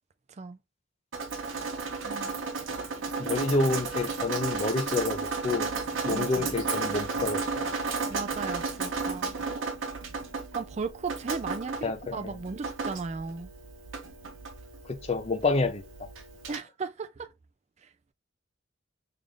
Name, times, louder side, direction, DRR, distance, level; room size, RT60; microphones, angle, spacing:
Drip, 1.1-16.6, right 4 dB, 75° right, 0.9 m, -34 dB
voice 1, 3.2-5.2 5.4-5.7 6.0-7.7 11.8-12.4 14.9-15.8, left 3 dB, 30° left, 0.5 m, -28 dB
voice 2, 6.1-6.5 8.1-9.3 10.5-13.5 16.5-17.3, right 4 dB, 35° right, 0.3 m, -36 dB
3.3 x 2.4 x 3.7 m
head